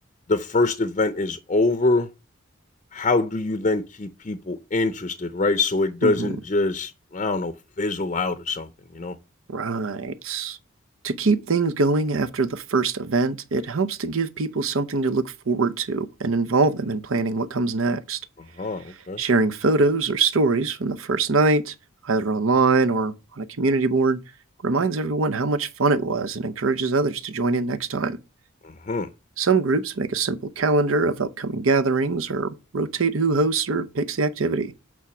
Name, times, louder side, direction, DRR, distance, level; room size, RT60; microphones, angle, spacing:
voice 1, 0.3-2.1 2.9-9.2 18.4-19.2 28.6-29.1, left 3 dB, 35° left, 0.5 m, -24 dB
voice 2, 6.0-6.3 9.5-10.6 11.0-18.2 19.2-21.7 22.0-24.2 24.6-28.2 29.4-34.7, right 3 dB, 85° right, 0.7 m, -23 dB
8.5 x 3.5 x 6.1 m
head